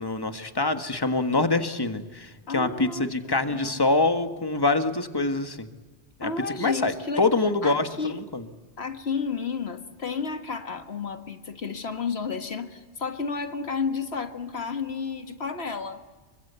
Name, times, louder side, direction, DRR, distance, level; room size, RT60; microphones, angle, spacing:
voice 1, 0.0-5.7 6.2-6.3 6.6-8.4, left 3 dB, 20° left, 8 dB, 1.5 m, -25 dB
voice 2, 2.5-3.7 6.2-7.3 7.6-8.2 8.8-16.0, left 5 dB, 65° left, 8 dB, 1.9 m, -32 dB
27.5 x 24.5 x 8.2 m, 1.3 s
omnidirectional pair, 1.2 m